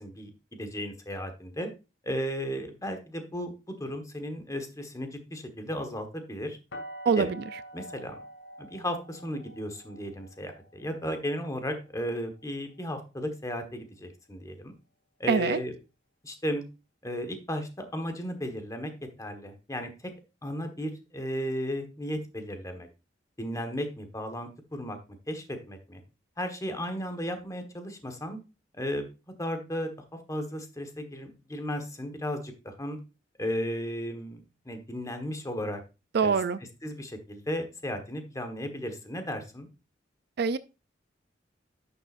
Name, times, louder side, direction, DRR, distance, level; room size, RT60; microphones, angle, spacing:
voice 1, 0.0-1.7 2.0-6.6 7.2-7.3 7.7-8.2 8.6-14.7 15.2-15.7 16.2-16.6 17.0-18.9 19.2-19.9 20.4-22.9 23.4-25.0 25.3-26.0 26.4-28.4 28.7-29.0 29.4-33.0 33.4-34.4 34.6-35.8 36.2-36.3 36.8-39.7, equal, 20° left, 1.3 m, -35 dB
sound 1, 6.7-12.6, equal, 80° left, 2.5 m, -47 dB
voice 2, 7.1-7.4 15.3-15.6 36.1-36.6 40.4-40.6, right 5 dB, 60° right, 0.4 m, -24 dB
10.5 x 6.9 x 2.5 m
head